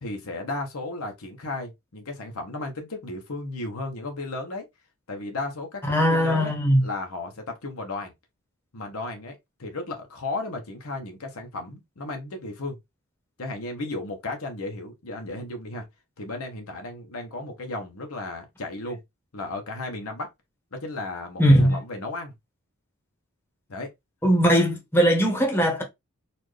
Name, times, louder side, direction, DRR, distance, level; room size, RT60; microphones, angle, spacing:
voice 1, 0.0-4.6 5.1-5.8 6.1-6.5 6.8-8.1 8.7-12.8 13.4-15.9 16.2-19.0 19.3-20.3 20.7-22.3 23.7-23.9, left 2 dB, 70° left, 1.0 m, -34 dB
voice 2, 5.9-6.9 21.4-21.8 24.2-25.8, equal, 10° left, 1.1 m, -19 dB
4.2 x 2.6 x 3.2 m
head